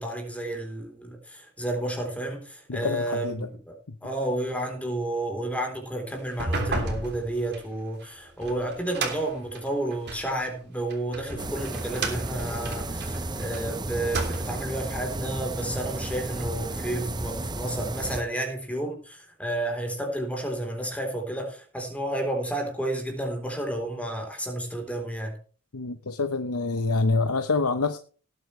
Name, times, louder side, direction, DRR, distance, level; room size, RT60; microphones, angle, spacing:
voice 1, 0.0-3.7 4.0-25.4, right 1 dB, 5° left, 3.8 m, -31 dB
voice 2, 2.7-3.4 25.7-28.0, left 3 dB, 70° left, 1.0 m, -26 dB
sound 1, 6.2-10.3 10.9-13.6 14.0-14.7, right 2 dB, 50° right, 3.2 m, -33 dB
sound 2, 11.4-18.2, right 2 dB, 20° right, 0.8 m, -33 dB
18.5 x 8.7 x 3.3 m
head